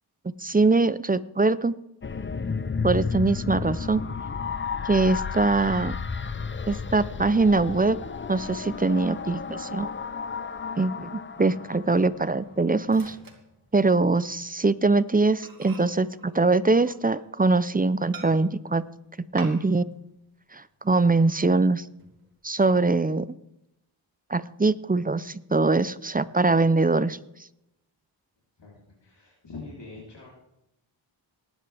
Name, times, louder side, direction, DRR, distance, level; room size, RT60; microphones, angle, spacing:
voice 1, 0.4-1.7 2.8-4.0 4.8-6.0 6.7-8.0 8.3-9.9 10.8-13.2 13.7-18.8 19.3-19.8 20.5-21.9 22.4-23.3 24.3-27.2, right 3 dB, 20° right, 16 dB, 0.5 m, -22 dB
sound 1, 2.0-12.4, left 5 dB, 25° left, 0.6 m, -32 dB
Microwave oven, 11.3-14.2 14.6-14.8 15.1-15.2 15.4-17.5 18.1-18.7 19.4-20.0 20.2-20.3 20.8-21.6 22.0-22.6, right 4 dB, 45° right, 2.5 m, -48 dB
voice 2, 28.6-30.3, left 3 dB, 60° left, -4 dB, 3.8 m, -43 dB
19.0 x 11.0 x 3.5 m, 0.83 s
wide cardioid pair, 75°, 47 cm